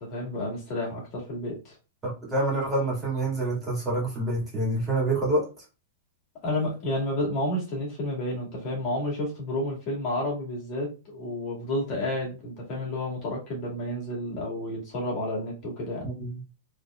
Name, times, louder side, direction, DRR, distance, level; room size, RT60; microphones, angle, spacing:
voice 1, 0.0-1.7 6.4-16.1, left 1 dB, 40° left, -3 dB, 2.1 m, -31 dB
voice 2, 2.0-5.4 16.0-16.3, right 2 dB, 15° right, -4 dB, 2.2 m, -27 dB
3.9 x 3.3 x 2.4 m, 0.32 s
hypercardioid pair, 140°, 0 cm